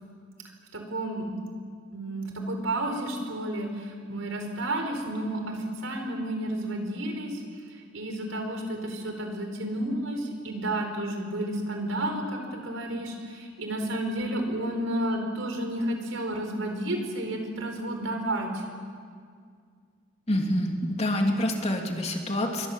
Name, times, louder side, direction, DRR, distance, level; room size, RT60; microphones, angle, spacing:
voice 1, 0.7-1.4 1.9-5.6 5.8-7.4 7.9-18.6, right 1 dB, 85° right, 4 dB, 4.8 m, -31 dB
voice 2, 20.3-22.7, left 1 dB, 35° left, 2 dB, 3.0 m, -27 dB
29.0 x 23.0 x 7.5 m, 2.1 s
head